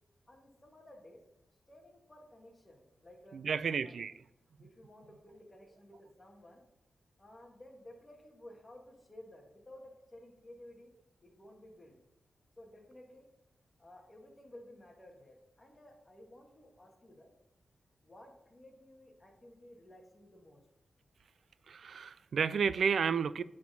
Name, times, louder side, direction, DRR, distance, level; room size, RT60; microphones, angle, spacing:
voice 1, 0.3-1.2 1.7-3.4 3.8-3.9 4.6-6.6 7.2-10.9 11.2-12.0 12.6-13.3 13.8-17.3 18.0-20.6, left 1 dB, 20° left, 1.9 m, -55 dB
voice 2, 3.3-4.1 21.7-23.4, right 6 dB, 70° right, 0.4 m, -31 dB
9.5 x 4.3 x 5.5 m
wide cardioid pair, 115°, 0 cm